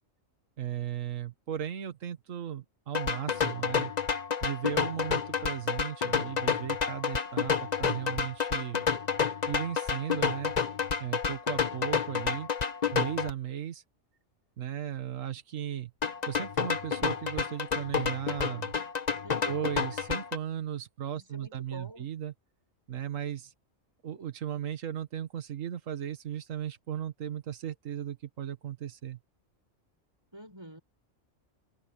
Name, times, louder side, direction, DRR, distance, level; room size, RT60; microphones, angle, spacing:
voice 1, 0.6-3.9 4.4-8.8 9.5-10.5 11.0-12.5 12.9-13.8 14.6-15.9 16.3-18.7 19.4-22.3 22.9-23.5 24.0-29.2, right 10 dB, 80° right, 1.6 m, -36 dB
sound 1, 3.0-13.3 16.0-20.4, left 6 dB, 35° left, 1.0 m, -30 dB
voice 2, 19.2-19.7 21.1-22.1 30.3-30.8, right 1 dB, 20° right, 7.0 m, -47 dB
omnidirectional pair, 1.3 m